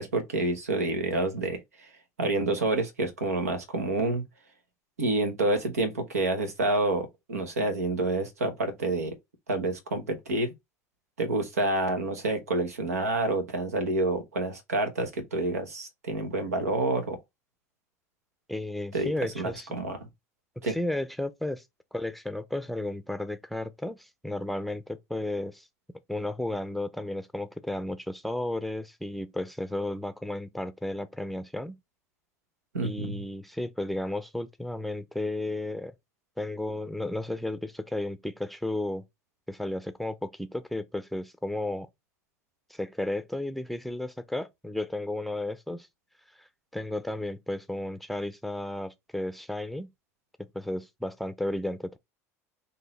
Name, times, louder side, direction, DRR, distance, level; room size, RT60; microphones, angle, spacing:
voice 1, 0.0-1.9 2.2-4.2 5.0-9.2 9.5-10.5 11.2-17.2 18.9-19.1 19.3-20.0 20.6-20.8 32.7-33.2, right 2 dB, 90° right, 0.9 m, -28 dB
voice 2, 18.5-19.7 20.6-21.6 21.9-25.7 26.1-31.8 32.8-35.9 36.4-39.0 39.5-41.9 42.7-45.9 46.7-49.9 50.5-52.0, left 1 dB, ahead, 0.6 m, -33 dB
3.8 x 2.7 x 4.0 m
hypercardioid pair, 75°, 8 cm